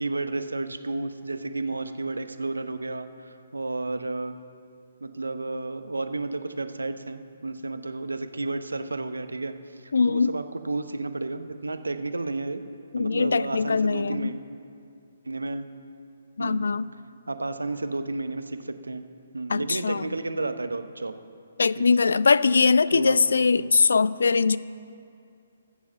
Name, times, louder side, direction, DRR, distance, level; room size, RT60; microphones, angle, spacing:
voice 1, 0.0-4.4 5.0-9.6 9.8-12.6 12.9-14.4 15.2-15.7 16.4-16.7 17.3-19.0 19.3-21.2 21.8-21.9 22.9-23.2 23.5-23.8, right 2 dB, 80° right, 10 dB, 0.8 m, -32 dB
voice 2, 9.9-10.4 12.9-14.3 16.4-16.9 19.5-20.1 21.6-24.6, left 4 dB, 70° left, 18 dB, 0.3 m, -21 dB
13.5 x 7.3 x 7.4 m, 2.5 s
figure-of-eight pair, 135°, 0 cm